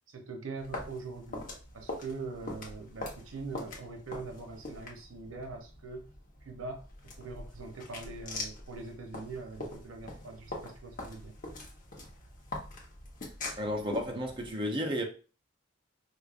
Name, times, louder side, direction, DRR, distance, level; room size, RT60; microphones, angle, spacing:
voice 1, 0.1-6.1 6.4-6.8 7.2-11.3, right 3 dB, 85° right, 0.7 m, -42 dB
sound 1, 0.6-14.5, left 2 dB, 40° left, 0.9 m, -43 dB
voice 2, 13.6-15.0, equal, 25° right, 0.6 m, -32 dB
4.7 x 2.5 x 2.4 m
head